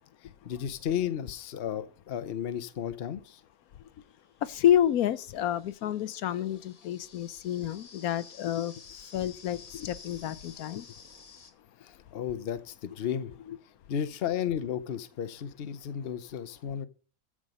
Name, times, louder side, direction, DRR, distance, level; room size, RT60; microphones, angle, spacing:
voice 1, 0.4-3.4 11.8-13.3 13.9-16.9, left 9 dB, 50° left, 0.9 m, -33 dB
sound 1, 4.0-11.5, left 5 dB, 70° left, 1.9 m, -52 dB
voice 2, 4.4-8.7 9.1-10.8, left 11 dB, 90° left, 1.2 m, -29 dB
13.5 x 4.9 x 5.2 m
omnidirectional pair, 1.5 m